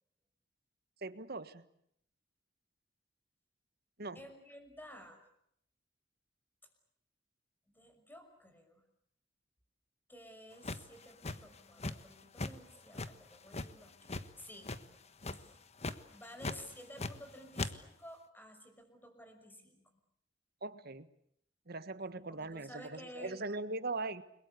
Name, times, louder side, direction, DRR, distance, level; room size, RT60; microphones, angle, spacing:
voice 1, 1.0-1.7 4.0-4.2 20.6-21.1 21.7-24.2, right 3 dB, 55° right, 13 dB, 1.5 m, -40 dB
voice 2, 4.1-5.2 7.7-8.8 10.1-14.8 15.3-15.6 16.1-19.9 22.2-23.4, equal, 10° left, 6 dB, 5.9 m, -53 dB
sound 1, 10.6-12.1 12.4-12.5 12.9-14.3 14.6-14.9 15.2-15.5 15.8-16.0 16.4-17.3 17.6-17.7, left 2 dB, 35° left, 1.3 m, -39 dB
30.0 x 22.0 x 8.4 m, 0.73 s
head